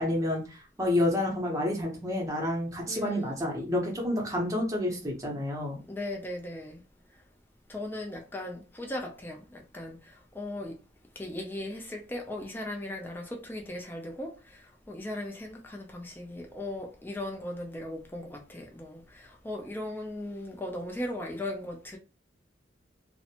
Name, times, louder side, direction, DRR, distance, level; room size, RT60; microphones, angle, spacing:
voice 1, 0.0-5.8, left 1 dB, 15° right, 0.7 m, -29 dB
voice 2, 2.8-3.4 5.9-6.8 7.7-10.8 11.2-22.0, left 1 dB, 10° left, 0.4 m, -38 dB
2.5 x 2.1 x 2.8 m
head